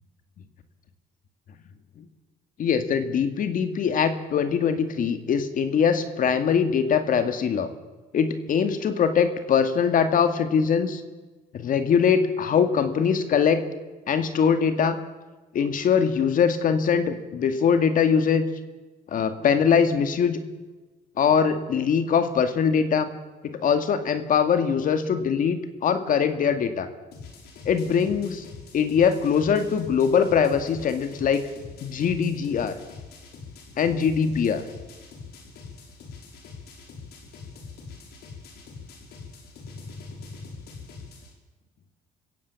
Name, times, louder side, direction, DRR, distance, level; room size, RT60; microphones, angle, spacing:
voice 1, 2.6-7.7 8.1-11.0 11.5-13.6 14.1-15.0 15.5-18.5 19.1-20.4 21.2-23.1 23.4-26.9 27.7-28.4 28.7-31.4 31.8-32.7 33.8-34.6, left 7 dB, 55° left, 9 dB, 2.2 m, -22 dB
sound 1, 27.1-41.3, left 4 dB, 70° left, 5.6 m, -43 dB
26.5 x 16.0 x 7.3 m, 1.2 s
cardioid pair, 110°, 17 cm